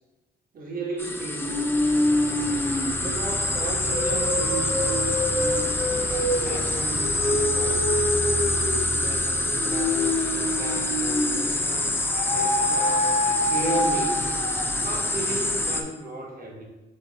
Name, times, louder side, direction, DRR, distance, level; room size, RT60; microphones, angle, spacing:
voice 1, 0.5-1.7 3.0-8.2 8.9-12.0 12.3-13.2 13.5-14.4 14.8-16.6, right 2 dB, 45° right, -1 dB, 1.2 m, -35 dB
sound 1, 1.0-15.8, left 2 dB, 10° left, 0.4 m, -27 dB
sound 2, 1.4-11.6 12.1-14.9, left 1 dB, 40° left, 0.9 m, -27 dB
4.1 x 3.5 x 3.5 m, 1.1 s
cardioid pair, 90°, 20 cm